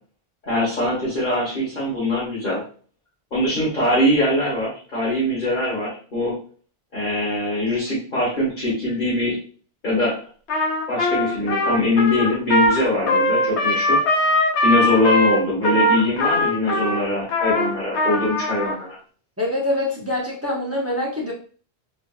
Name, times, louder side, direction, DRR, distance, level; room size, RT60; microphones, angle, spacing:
voice 1, 0.4-2.6 3.3-6.4 6.9-9.4 9.8-10.1 10.9-14.0 14.6-18.9, left 1 dB, 50° left, -9 dB, 1.3 m, -22 dB
Trumpet, 10.5-18.8, left 1 dB, 90° left, 0.9 m, -20 dB
voice 2, 19.4-21.3, left 1 dB, 20° right, -4 dB, 0.5 m, -24 dB
3.1 x 2.5 x 2.3 m, 0.42 s
omnidirectional pair, 1.1 m